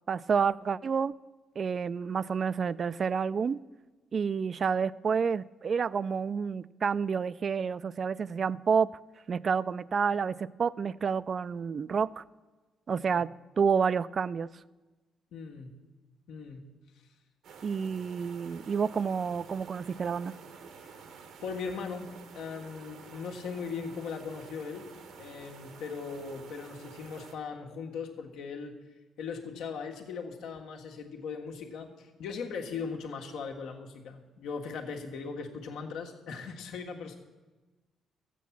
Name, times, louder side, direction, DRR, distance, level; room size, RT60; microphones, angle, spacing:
voice 1, 0.1-1.1 1.6-3.6 4.1-8.9 9.3-12.2 12.9-13.3 13.6-14.5 17.6-20.3, right 6 dB, 45° right, 19 dB, 0.3 m, -29 dB
voice 2, 15.3-15.7 16.3-16.6 20.8-21.0 21.4-24.9 25.2-28.8 29.2-37.2, left 5 dB, 85° left, 2 dB, 1.5 m, -39 dB
sound 1, 17.4-27.3, right 5 dB, 80° right, 1.3 m, -50 dB
13.5 x 8.4 x 7.1 m, 1.2 s
cardioid pair, 90°, 0 cm